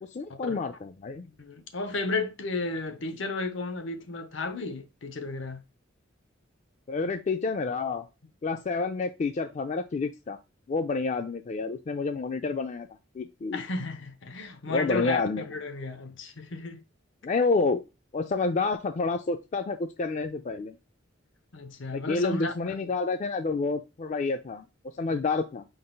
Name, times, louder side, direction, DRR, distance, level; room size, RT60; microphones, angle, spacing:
voice 1, 0.0-1.3 6.9-8.1 8.4-10.4 10.7-12.9 13.1-13.6 14.7-15.4 17.2-17.8 18.1-20.8 21.9-24.7 24.9-25.7, left 4 dB, 35° left, 0.3 m, -29 dB
voice 2, 1.2-5.6 13.5-16.8 21.5-22.9 25.0-25.2, left 3 dB, 70° left, 0.8 m, -33 dB
5.1 x 3.9 x 2.2 m
head